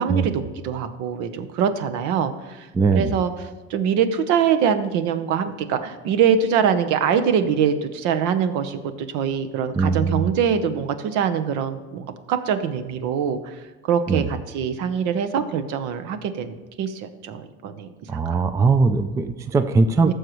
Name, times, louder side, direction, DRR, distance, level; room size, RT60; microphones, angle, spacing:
voice 1, 0.0-3.3 3.7-18.4 20.0-20.1, right 7 dB, 65° right, 9 dB, 0.9 m, -24 dB
voice 2, 2.7-3.1 9.7-10.3 14.1-14.3 18.1-20.1, right 4 dB, 10° right, 10 dB, 0.4 m, -20 dB
14.5 x 6.5 x 3.1 m, 1.2 s
supercardioid pair, 120°, 32 cm